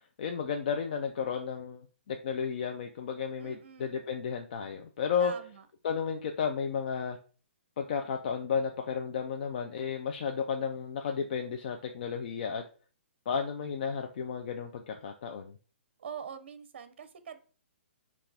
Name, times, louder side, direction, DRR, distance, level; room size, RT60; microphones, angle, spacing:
voice 1, 0.2-5.3 5.8-7.2 7.8-12.6 13.3-15.6, left 6 dB, 50° left, 4 dB, 0.5 m, -33 dB
voice 2, 3.4-4.0 5.2-5.7 16.0-17.4, right 7 dB, 55° right, 10 dB, 0.7 m, -44 dB
5.7 x 2.5 x 3.4 m, 0.38 s
hypercardioid pair, 160°, 7 cm